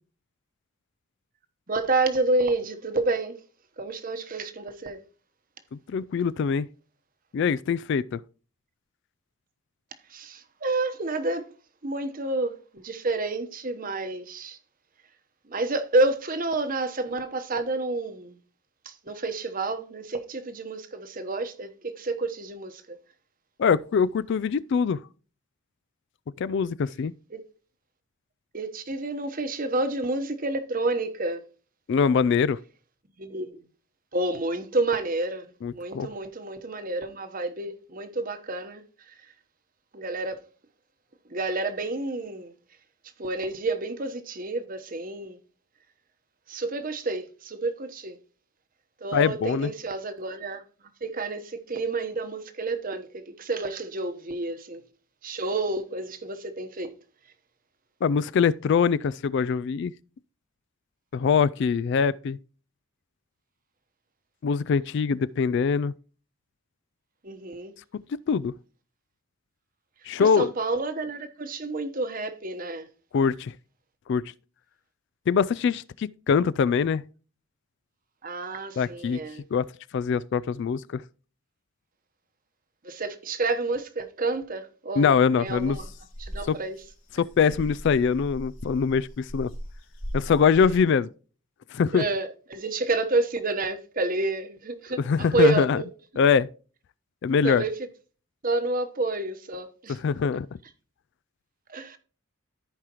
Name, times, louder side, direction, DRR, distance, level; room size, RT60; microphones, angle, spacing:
voice 1, 1.7-3.4 3.8-5.0 10.1-11.5 11.8-14.6 15.5-18.4 18.8-23.0 27.3-27.4 28.5-31.4 33.2-33.6 34.1-35.5 35.7-38.8 39.1-39.2 39.9-40.4 41.3-42.5 43.2-45.4 46.5-48.2 49.0-50.6 51.0-54.8 55.2-56.9 67.2-67.7 70.2-72.9 78.2-79.4 82.8-85.9 86.2-86.8 91.9-95.0 95.3-95.8 97.4-97.7 98.4-100.1 101.7-102.0, right 3 dB, 40° right, 1.0 m, -29 dB
voice 2, 5.7-6.7 7.3-8.2 23.6-25.0 26.4-27.1 31.9-32.6 35.6-36.1 49.1-49.7 58.0-59.9 61.1-62.4 64.4-65.9 68.3-68.5 70.1-70.5 73.1-73.5 74.1-74.2 75.3-77.0 78.8-79.2 79.5-79.7 79.9-81.0 85.0-85.8 86.5-86.6 87.2-89.5 90.1-91.1 91.7-92.0 95.1-95.8 96.2-96.5 97.2-97.6 99.9-100.5, left 6 dB, 55° left, 0.3 m, -23 dB
sound 1, 85.5-90.7, equal, 75° left, 2.7 m, -39 dB
14.5 x 4.9 x 2.9 m
head